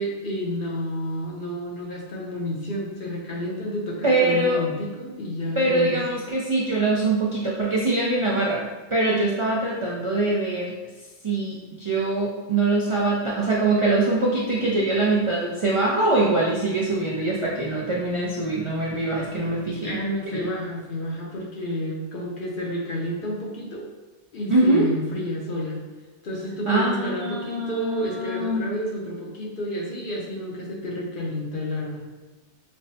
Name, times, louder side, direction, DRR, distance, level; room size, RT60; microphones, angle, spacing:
voice 1, 0.0-6.0 19.8-23.9 24.3-25.8 26.2-32.0, equal, 55° left, -2 dB, 0.8 m, -30 dB
voice 2, 4.0-4.6 5.6-10.7 11.2-20.0 20.3-20.4 24.5-24.9 26.7-28.6, right 2 dB, 50° right, -4 dB, 0.4 m, -23 dB
5.3 x 2.1 x 2.7 m, 1.3 s
omnidirectional pair, 1.2 m